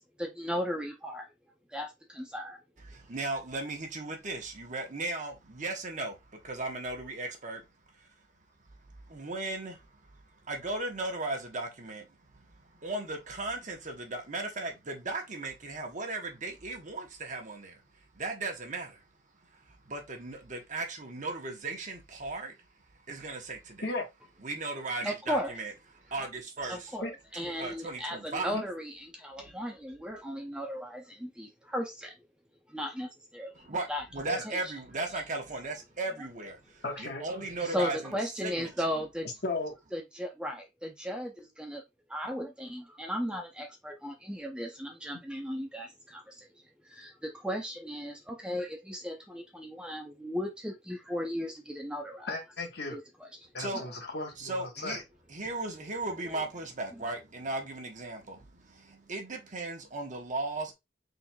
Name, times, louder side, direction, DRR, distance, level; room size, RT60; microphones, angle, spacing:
voice 1, 0.2-1.3 1.7-2.6 25.0-25.5 26.7-32.2 32.7-34.0 34.4-34.7 37.6-39.3 39.9-41.8 42.1-46.5 46.8-52.3 52.9-53.3 53.7-53.8 56.2-56.4, equal, 5° right, 0.5 m, -36 dB
voice 2, 2.8-7.6 7.9-8.1 8.8-19.0 19.4-22.6 23.1-23.9 24.4-27.0 27.4-28.6 29.4-29.5 33.5-38.7 53.6-53.9 54.4-55.0 55.3-60.7, right 2 dB, 45° right, 1.0 m, -37 dB
voice 3, 36.8-37.2 39.4-39.7 52.3-53.0 53.5-55.0, left 2 dB, 65° left, 1.3 m, -35 dB
4.3 x 3.9 x 2.2 m
head